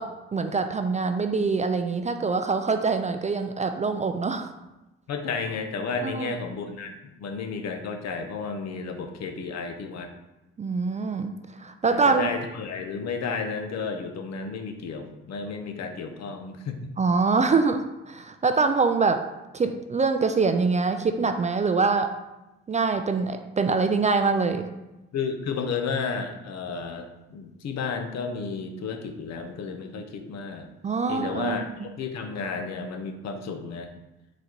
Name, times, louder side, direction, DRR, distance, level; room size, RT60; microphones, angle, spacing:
voice 1, 0.0-4.5 6.0-6.3 10.6-11.3 11.6-12.3 17.0-19.2 19.5-22.1 22.7-24.7 30.8-31.7, right 4 dB, 25° right, 7 dB, 0.3 m, -24 dB
voice 2, 5.1-10.1 11.9-16.8 25.1-30.7 31.1-33.9, left 5 dB, 60° left, 5 dB, 0.7 m, -32 dB
4.0 x 2.4 x 4.4 m, 1.0 s
supercardioid pair, 55°, 30 cm